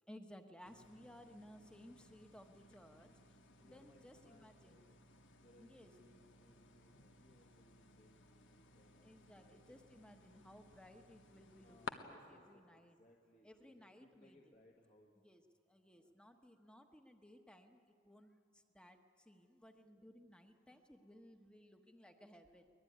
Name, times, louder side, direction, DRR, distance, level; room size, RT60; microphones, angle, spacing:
voice 1, 0.1-3.1 3.6-4.8 5.6-5.9 9.0-13.0 13.4-14.4 15.2-15.4 15.7-17.8 18.0-18.4 18.7-19.0 19.3-22.6, equal, 5° left, 6 dB, 1.2 m, -59 dB
sound 1, 0.6-11.9, left 4 dB, 80° left, 1.3 m, -57 dB
voice 2, 1.0-1.8 3.0-3.1 3.6-5.0 5.4-9.1 9.3-9.8 11.6-15.1 15.9-16.2, left 1 dB, 45° left, 0 dB, 1.8 m, -68 dB
23.0 x 20.5 x 9.5 m, 2.3 s
head